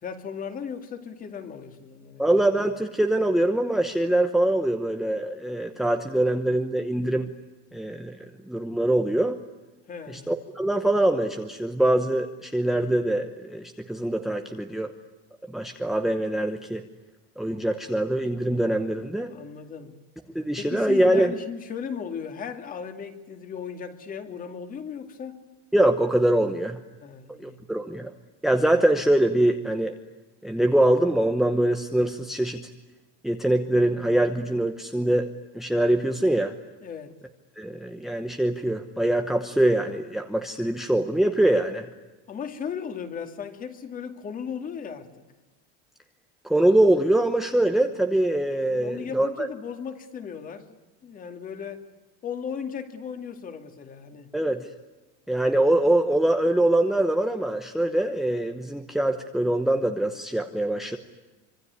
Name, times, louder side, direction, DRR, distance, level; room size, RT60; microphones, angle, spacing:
voice 1, 0.0-2.2 9.9-10.3 19.3-20.0 20.6-25.4 27.0-27.6 36.8-37.1 42.3-45.2 48.7-50.8 51.0-51.9 52.2-54.3, left 7 dB, 25° left, 7 dB, 2.4 m, -36 dB
voice 2, 2.2-7.3 7.7-8.2 8.5-9.4 10.1-14.9 15.5-16.8 17.4-19.3 20.3-21.3 25.7-26.8 27.4-28.1 28.4-30.0 30.4-32.7 33.2-35.3 35.5-36.5 37.6-41.9 46.4-49.5 54.3-54.7 55.3-61.0, right 1 dB, ahead, 6 dB, 1.0 m, -23 dB
25.5 x 24.0 x 9.6 m, 1.2 s
cardioid pair, 160°, 32 cm